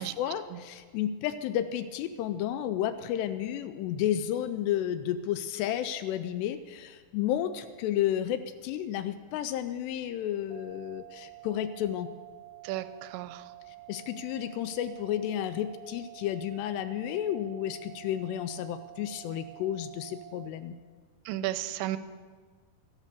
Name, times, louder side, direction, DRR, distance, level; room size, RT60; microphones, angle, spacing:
voice 1, 0.0-12.1 13.9-20.8, left 11 dB, 80° left, 12 dB, 2.5 m, -32 dB
sound 1, 10.5-20.5, right 20 dB, 75° right, 2.1 m, -49 dB
voice 2, 12.6-13.5 21.3-22.0, right 14 dB, 90° right, 14 dB, 2.9 m, -34 dB
13.5 x 10.5 x 6.9 m, 1.5 s
omnidirectional pair, 5.1 m